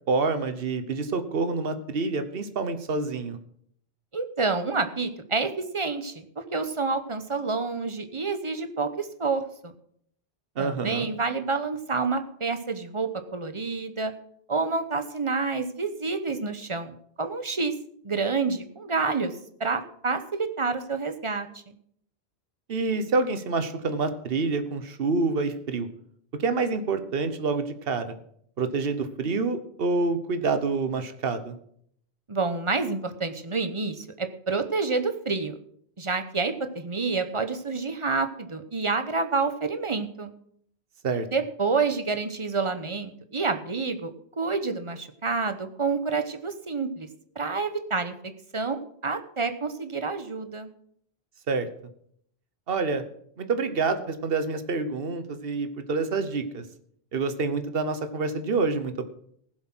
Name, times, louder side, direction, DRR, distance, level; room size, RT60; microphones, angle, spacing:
voice 1, 0.1-3.4 10.6-11.1 22.7-25.9 26.4-28.1 28.6-31.5 41.0-41.3 51.5-51.7 52.7-53.0 53.4-56.6 57.1-59.0, right 4 dB, 65° right, 10 dB, 1.3 m, -27 dB
voice 2, 4.1-9.7 10.6-14.1 14.5-17.7 18.0-19.3 19.6-21.8 32.3-35.6 36.0-40.3 41.3-44.1 44.4-47.1 47.3-48.1 48.5-50.7, right 4 dB, 30° right, 8 dB, 1.0 m, -28 dB
15.5 x 7.7 x 6.1 m, 0.67 s
omnidirectional pair, 1.1 m